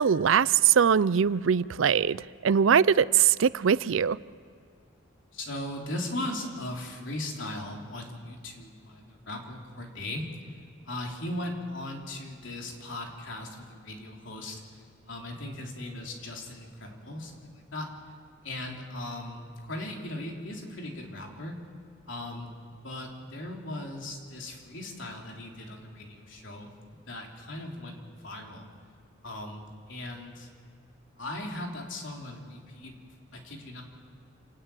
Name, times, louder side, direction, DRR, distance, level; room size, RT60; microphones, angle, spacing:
voice 1, 0.0-4.2, right 7 dB, 75° right, 19 dB, 0.5 m, -22 dB
voice 2, 5.3-10.3 10.8-17.9 18.4-21.6 22.1-22.5 22.8-28.6 29.2-30.5 31.2-32.9 33.3-33.8, left 1 dB, 65° left, 1 dB, 3.3 m, -38 dB
28.0 x 10.0 x 9.1 m, 2.3 s
head